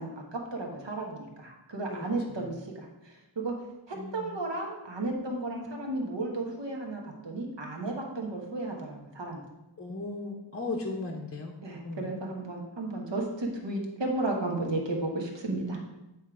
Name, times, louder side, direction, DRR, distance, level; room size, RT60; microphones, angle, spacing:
voice 1, 0.0-3.5 3.9-9.4 11.6-15.9, right 2 dB, 60° right, 0 dB, 1.4 m, -34 dB
voice 2, 1.9-2.5 3.9-4.3 9.8-11.5 11.8-12.1, left 3 dB, 30° left, 1 dB, 0.7 m, -37 dB
8.1 x 3.2 x 4.8 m, 0.96 s
wide cardioid pair, 90°, 49 cm